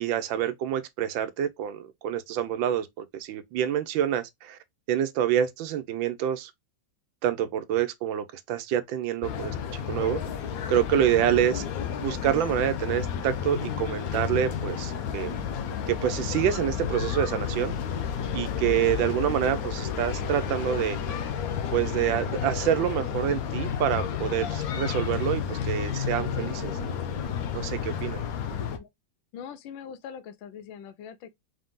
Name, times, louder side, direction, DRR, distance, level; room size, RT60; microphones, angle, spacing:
voice 1, 0.0-4.6 4.9-6.5 7.2-10.2 10.7-11.6 12.0-15.3 15.9-17.7 18.3-21.0 21.7-27.0 27.5-28.2, right 10 dB, 80° right, 1.4 m, -27 dB
sound 1, 9.2-28.8, left 7 dB, 65° left, 0.9 m, -31 dB
voice 2, 28.5-28.9 29.3-31.3, left 8 dB, 90° left, 1.4 m, -42 dB
4.0 x 2.5 x 3.6 m
omnidirectional pair, 2.1 m